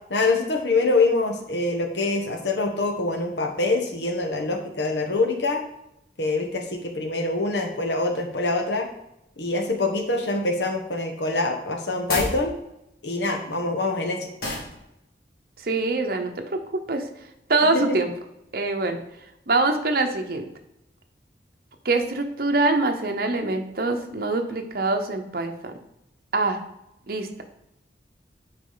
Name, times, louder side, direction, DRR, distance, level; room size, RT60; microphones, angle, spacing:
voice 1, 0.1-5.6 6.2-8.9 9.4-12.5 13.0-14.3 17.7-18.0, left 3 dB, 75° left, 4 dB, 1.0 m, -25 dB
sound 1, 12.1-12.4 14.4-14.7, left 1 dB, 55° left, 2.1 m, -28 dB
voice 2, 15.6-17.1 17.5-18.1 18.5-19.0 19.5-20.4 21.8-25.7 26.3-26.6 27.1-27.4, right 3 dB, 55° right, 5 dB, 0.8 m, -24 dB
8.3 x 4.8 x 3.9 m, 0.84 s
head